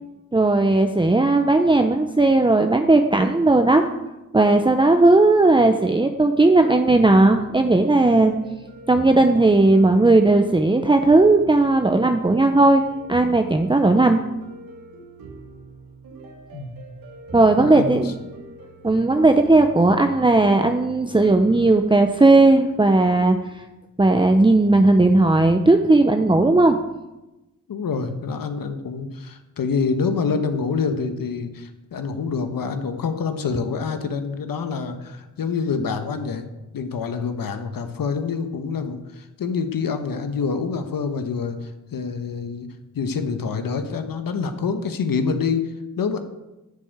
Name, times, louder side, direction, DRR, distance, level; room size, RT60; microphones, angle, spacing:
voice 1, 0.3-3.9 4.3-8.3 8.9-12.8 13.1-14.2 17.3-18.1 18.8-23.4 24.0-26.8, right 2 dB, 15° right, 5 dB, 0.8 m, -16 dB
sound 1, 6.8-23.6, right 2 dB, 90° right, 3.2 m, -43 dB
voice 2, 17.6-18.1 27.7-36.5 36.7-42.7 42.9-46.2, left 5 dB, 75° left, 7 dB, 1.4 m, -26 dB
10.5 x 8.0 x 8.1 m, 1.0 s
cardioid pair, 70°, 34 cm